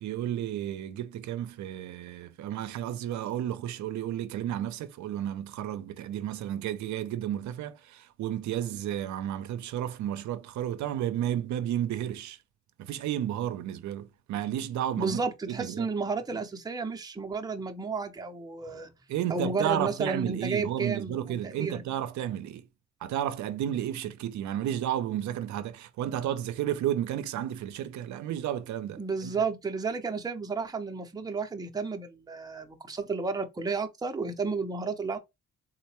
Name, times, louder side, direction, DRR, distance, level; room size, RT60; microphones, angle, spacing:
voice 1, 0.0-12.4 12.8-15.2 15.5-15.9 19.1-22.6 23.0-29.3, right 11 dB, 70° right, 0.5 m, -32 dB
voice 2, 15.0-18.9 19.3-21.8 29.0-35.2, right 4 dB, 15° right, 0.6 m, -32 dB
3.9 x 2.1 x 2.9 m
cardioid pair, 90°, 30 cm